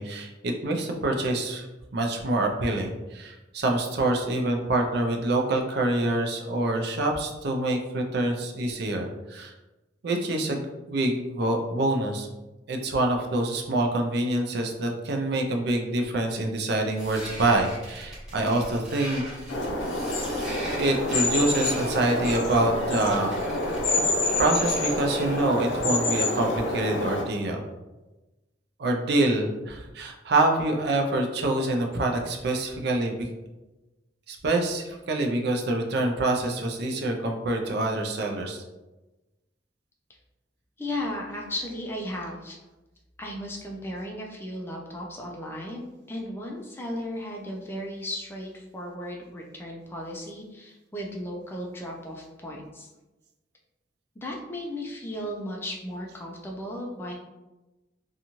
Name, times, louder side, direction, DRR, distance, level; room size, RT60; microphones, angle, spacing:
voice 1, 0.0-1.7 1.9-9.5 10.0-12.3 12.7-19.2 20.8-23.3 24.4-27.6 28.8-33.3 34.3-38.6, right 2 dB, 60° right, 3 dB, 0.5 m, -26 dB
sound 1, 17.0-25.4, equal, 5° right, 1.0 m, -40 dB
sound 2, 19.5-27.2, left 2 dB, 90° left, 0.5 m, -27 dB
voice 2, 40.8-42.6 43.2-52.9 54.2-57.1, left 1 dB, 15° left, -1 dB, 0.3 m, -35 dB
2.6 x 2.3 x 2.9 m, 1.1 s
head